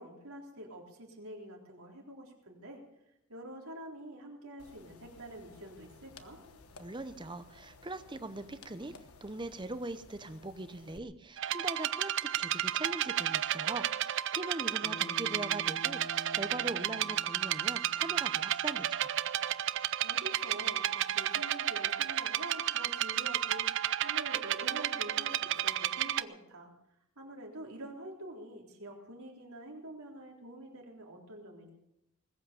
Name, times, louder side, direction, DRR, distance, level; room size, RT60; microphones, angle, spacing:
voice 1, 0.0-2.8 3.3-6.4 14.7-15.0 20.0-26.7 27.2-31.7, right 1 dB, 85° right, 0 dB, 3.8 m, -47 dB
sound 1, 4.6-11.0, left 4 dB, 90° left, 1.2 m, -56 dB
voice 2, 6.8-8.9 9.2-19.1, right 2 dB, 20° right, 12 dB, 0.8 m, -41 dB
sound 2, 11.4-26.2, right 11 dB, 55° right, 0.5 m, -32 dB
Bass guitar, 14.8-19.2, left 2 dB, 55° left, 2.0 m, -50 dB
20.0 x 8.6 x 7.0 m, 0.83 s
head